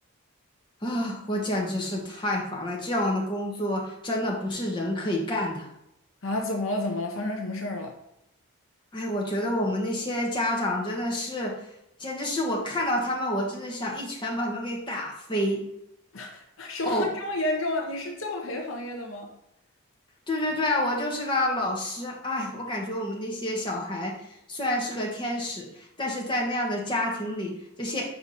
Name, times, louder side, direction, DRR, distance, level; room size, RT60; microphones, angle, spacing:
voice 1, 0.8-5.7 8.9-11.5 12.0-15.6 16.8-17.1 20.3-24.1 24.5-28.1, left 1 dB, 20° left, 1.4 m, -28 dB
voice 2, 6.2-7.9 16.1-19.3, left 1 dB, 60° left, 0.9 m, -30 dB
6.8 x 4.7 x 4.2 m
head